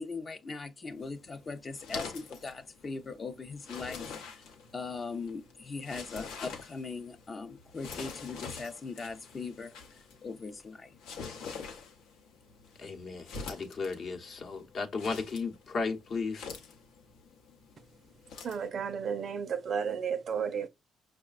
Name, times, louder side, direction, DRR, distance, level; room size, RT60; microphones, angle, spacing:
voice 1, 0.0-4.1 4.3-9.8 10.2-10.9, left 4 dB, 35° left, 0.5 m, -40 dB
sound 1, 0.9-18.7, left 5 dB, 85° left, 0.7 m, -46 dB
voice 2, 12.8-16.5, left 4 dB, 55° left, 0.9 m, -35 dB
voice 3, 18.4-20.7, right 7 dB, 55° right, 0.5 m, -33 dB
5.7 x 2.1 x 2.4 m
supercardioid pair, 70°, 0 cm